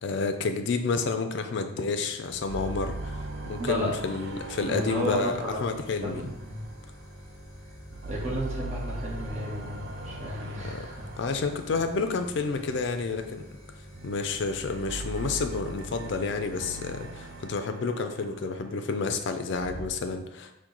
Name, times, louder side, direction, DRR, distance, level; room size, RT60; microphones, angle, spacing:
voice 1, 0.0-6.2 10.6-10.9 11.2-13.4 14.0-20.5, left 4 dB, 55° left, 7 dB, 0.4 m, -30 dB
sound 1, 2.3-17.5, equal, 15° left, 0.9 m, -48 dB
sound 2, 2.5-7.4 7.8-13.1 13.9-19.9, right 2 dB, 55° right, 0.4 m, -41 dB
voice 2, 3.6-4.2 4.6-6.6 8.0-11.0, equal, 35° right, -4 dB, 1.0 m, -33 dB
4.5 x 2.1 x 3.8 m, 0.87 s
head